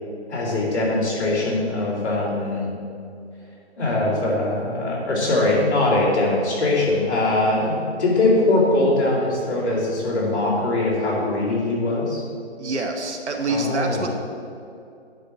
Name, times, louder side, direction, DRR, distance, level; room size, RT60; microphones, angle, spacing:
voice 1, 0.3-2.7 3.8-12.2 13.5-14.0, left 2 dB, 15° left, -11 dB, 2.4 m, -21 dB
voice 2, 12.6-14.1, right 2 dB, 85° right, 3 dB, 1.4 m, -26 dB
10.5 x 4.3 x 6.0 m, 2.5 s
hypercardioid pair, 180°, 33 cm